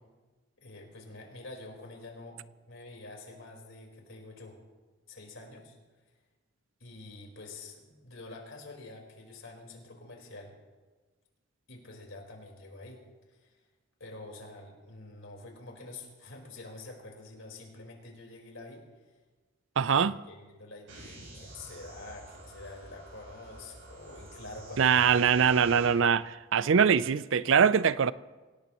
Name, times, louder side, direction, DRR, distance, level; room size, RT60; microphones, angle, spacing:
voice 1, 0.6-4.6 5.1-5.7 6.8-10.5 11.7-13.0 13.3-13.5 14.0-18.8 19.8-26.1, left 2 dB, 70° left, 4.3 m, -47 dB
voice 2, 19.8-20.2 24.8-26.2 26.5-28.1, right 7 dB, 65° right, 0.4 m, -23 dB
sound 1, 20.9-25.9, right 1 dB, 80° right, 6.1 m, -48 dB
26.0 x 18.0 x 3.0 m
head